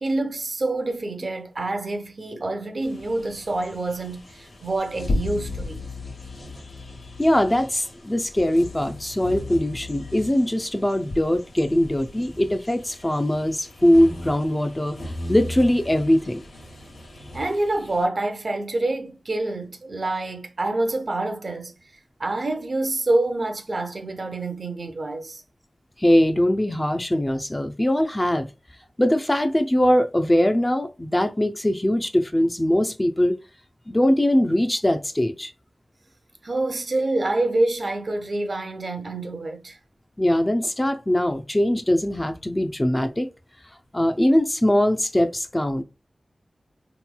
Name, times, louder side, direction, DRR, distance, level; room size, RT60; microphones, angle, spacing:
voice 1, 0.0-5.9 17.3-21.7 22.2-25.4 36.4-39.8, right 2 dB, 55° right, 0.6 m, -27 dB
sound 1, 2.8-18.1, left 2 dB, 85° left, 1.0 m, -36 dB
voice 2, 7.2-15.0 15.3-16.4 26.0-28.5 29.0-33.4 33.9-35.5 40.2-43.3 43.9-45.8, left 1 dB, 20° left, 0.4 m, -21 dB
3.8 x 3.0 x 2.2 m
wide cardioid pair, 80°, 0 cm